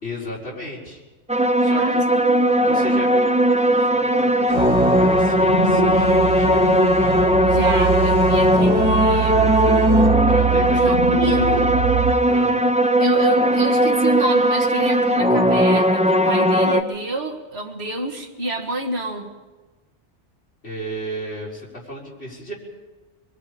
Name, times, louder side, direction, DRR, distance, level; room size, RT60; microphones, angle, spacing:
voice 1, 0.0-1.0 1.6-2.0 2.6-6.6 10.3-11.7 12.3-12.6 20.6-22.5, equal, 65° left, -5 dB, 5.1 m, -34 dB
sound 1, 1.3-16.8, equal, 10° right, 0.5 m, -18 dB
voice 2, 1.7-2.7 7.4-9.6 10.8-11.6 13.0-19.3, right 2 dB, 60° right, 3 dB, 2.1 m, -28 dB
sound 2, 4.5-10.1, right 1 dB, 30° left, 3.5 m, -38 dB
sound 3, 4.6-12.1, right 8 dB, 40° right, 0.8 m, -24 dB
25.0 x 23.0 x 5.1 m, 1.3 s
omnidirectional pair, 1.2 m